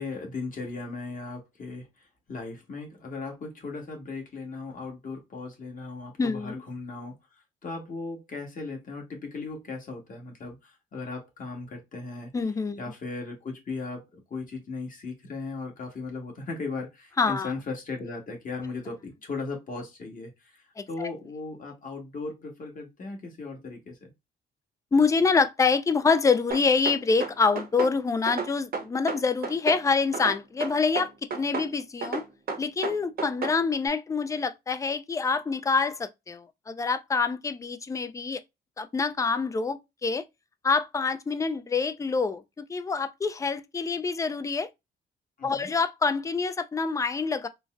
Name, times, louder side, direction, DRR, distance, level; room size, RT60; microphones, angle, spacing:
voice 1, 0.0-1.9 2.3-7.1 7.6-12.3 12.8-24.1 45.4-45.7, left 3 dB, 45° left, 1.3 m, -37 dB
voice 2, 6.2-6.6 12.3-12.8 17.2-17.5 20.8-21.1 24.9-32.2 32.6-38.4 38.8-40.2 40.6-44.7 45.4-47.5, left 4 dB, 15° left, 0.3 m, -26 dB
sound 1, 26.5-28.0 28.3-29.8 30.1-31.7 32.0-33.6, right 4 dB, 50° right, 0.8 m, -32 dB
3.9 x 2.0 x 2.4 m
cardioid pair, 90°, 20 cm